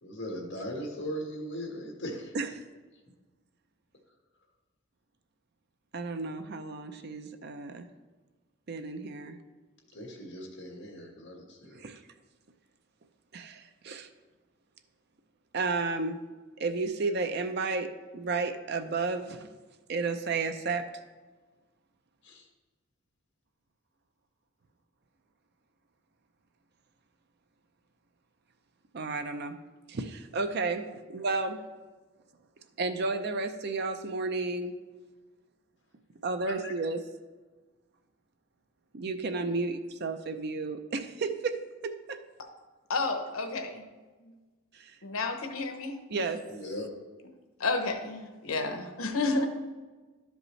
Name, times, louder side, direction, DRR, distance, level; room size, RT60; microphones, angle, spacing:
voice 1, 0.0-2.3 9.9-11.8 22.2-22.5 36.5-36.7 46.5-47.0, equal, 60° left, 1 dB, 1.6 m, -39 dB
voice 2, 5.9-7.9 8.7-9.4 11.7-12.0 13.3-14.1 15.5-16.2 16.6-19.5 19.9-20.8 28.9-29.6 29.9-31.6 32.8-34.7 36.2-37.0 38.9-41.6 41.8-42.2 44.7-45.0 46.1-46.4, right 3 dB, 50° right, 8 dB, 0.5 m, -32 dB
voice 3, 42.9-43.9 45.0-46.0 47.6-49.5, left 3 dB, 85° left, 5 dB, 0.9 m, -31 dB
12.0 x 5.2 x 3.2 m, 1.3 s
head